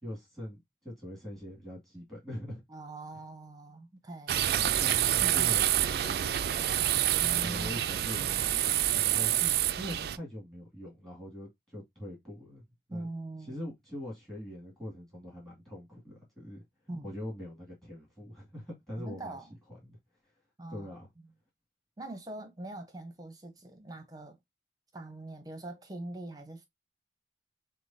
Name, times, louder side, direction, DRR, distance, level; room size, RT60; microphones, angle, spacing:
voice 1, 0.0-2.6 3.1-3.2 4.5-6.8 7.4-9.3 9.8-12.6 12.9-13.1 13.4-16.6 17.0-19.4 19.7-20.0 20.7-21.1, equal, ahead, 2.1 m, -43 dB
voice 2, 2.7-4.5 5.2-5.5 7.2-7.8 9.4-9.6 12.9-13.6 16.9-17.1 19.0-19.5 20.6-20.9 22.0-24.4 24.9-26.7, right 2 dB, 20° right, 0.8 m, -42 dB
sound 1, 4.3-10.2, right 12 dB, 60° right, 0.3 m, -27 dB
6.7 x 2.3 x 2.6 m
head